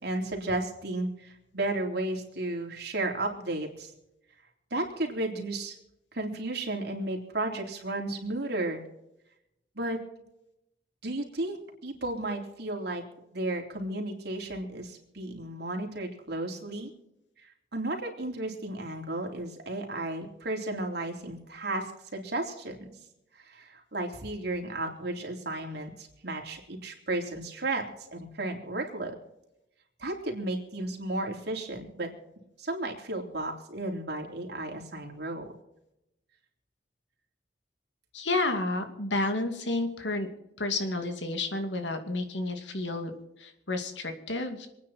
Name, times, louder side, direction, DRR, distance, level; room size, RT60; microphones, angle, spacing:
voice 1, 0.0-3.9 4.7-5.7 6.1-8.8 9.7-10.0 11.0-11.6 11.8-13.0 13.3-16.9 17.4-21.8 22.1-22.9 23.4-27.8 28.1-29.1 30.0-32.1 32.6-35.4, right 2 dB, 65° right, 2 dB, 3.5 m, -33 dB
voice 2, 38.1-40.3 40.6-44.7, left 2 dB, 85° left, 6 dB, 2.4 m, -31 dB
26.5 x 9.6 x 4.3 m, 0.85 s
head